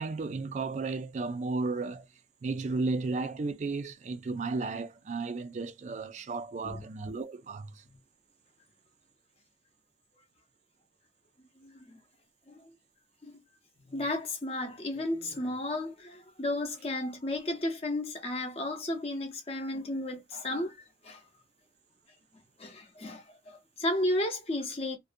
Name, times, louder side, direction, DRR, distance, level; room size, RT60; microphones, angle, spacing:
voice 1, 0.0-2.1 2.4-7.8, right 3 dB, 40° right, 0.3 m, -34 dB
voice 2, 11.6-12.0 12.5-12.7 13.2-13.3 13.9-20.8 21.0-21.2 22.6-25.0, left 1 dB, 35° left, 0.6 m, -33 dB
2.5 x 2.1 x 2.5 m
head